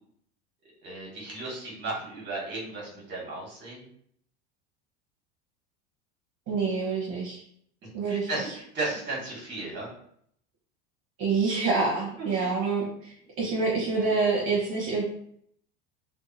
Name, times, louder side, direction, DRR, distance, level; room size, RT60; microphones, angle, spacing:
voice 1, 0.8-3.9 8.0-9.9 12.2-12.4, right 2 dB, 35° right, -3 dB, 1.3 m, -35 dB
voice 2, 6.5-7.4 7.9-8.3 11.2-12.8 13.4-15.0, right 4 dB, 50° right, -6 dB, 1.0 m, -26 dB
2.7 x 2.3 x 2.6 m, 0.66 s
supercardioid pair, 105°, 32 cm